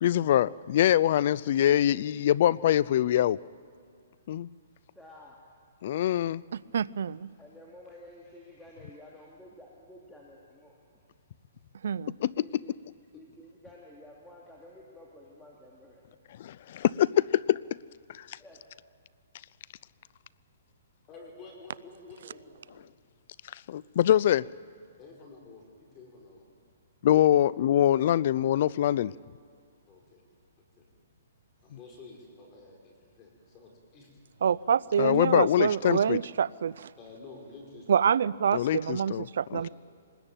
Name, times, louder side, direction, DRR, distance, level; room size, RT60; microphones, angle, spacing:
voice 1, 0.0-3.4 4.3-4.5 5.8-6.4 12.2-12.3 16.4-17.6 18.1-18.4 23.7-24.5 27.0-29.1 35.0-36.2 38.5-39.3 39.5-39.7, left 11 dB, 50° left, 21 dB, 0.5 m, -24 dB
voice 2, 4.9-5.4 7.4-11.1 12.3-12.8 13.1-16.0 18.4-18.6, left 1 dB, 5° left, -4 dB, 2.8 m, -51 dB
voice 3, 6.5-7.3 11.8-12.1 34.4-36.9 37.9-39.7, right 8 dB, 70° right, 21 dB, 0.5 m, -27 dB
voice 4, 21.1-22.6 25.0-26.5 29.9-30.2 30.8-30.9 31.6-34.1 35.1-35.6 37.0-38.0 39.5-39.7, left 3 dB, 25° left, 0 dB, 4.9 m, -50 dB
25.0 x 20.0 x 9.1 m, 2.2 s
hypercardioid pair, 155°, 0 cm